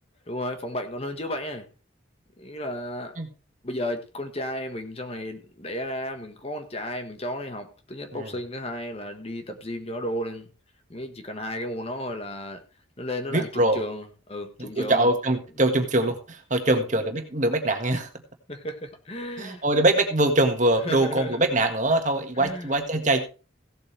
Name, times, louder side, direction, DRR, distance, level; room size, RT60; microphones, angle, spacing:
voice 1, 0.3-1.7 2.4-3.2 3.6-10.5 10.9-12.6 13.0-15.1 16.7-16.8 18.5-19.6 20.8-21.4 22.4-22.7, left 1 dB, 30° left, 1.4 m, -33 dB
voice 2, 13.3-13.8 14.6-18.1 19.4-23.2, right 1 dB, 40° right, 1.8 m, -23 dB
16.5 x 8.1 x 3.3 m
head